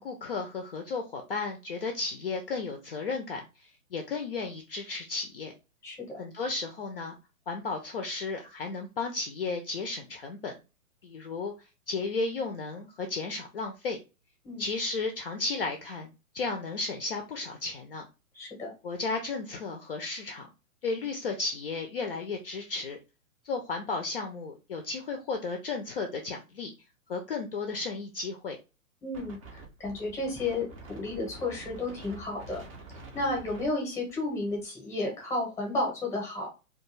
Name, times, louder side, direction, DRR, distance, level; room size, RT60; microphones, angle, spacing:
voice 1, 0.0-5.5 6.2-7.2 7.5-10.5 11.0-11.5 11.9-14.0 14.6-16.1 16.3-18.1 18.8-20.5 20.8-23.0 23.4-26.7 27.1-28.6, left 3 dB, 45° left, 3 dB, 0.4 m, -34 dB
voice 2, 18.3-18.7 29.0-29.4 29.8-32.6 33.1-36.5, left 2 dB, 5° left, 0 dB, 0.7 m, -32 dB
Wind, 29.1-34.6, right 3 dB, 25° right, 0.5 m, -47 dB
2.3 x 2.3 x 3.0 m, 0.29 s
figure-of-eight pair, 125°, 42 cm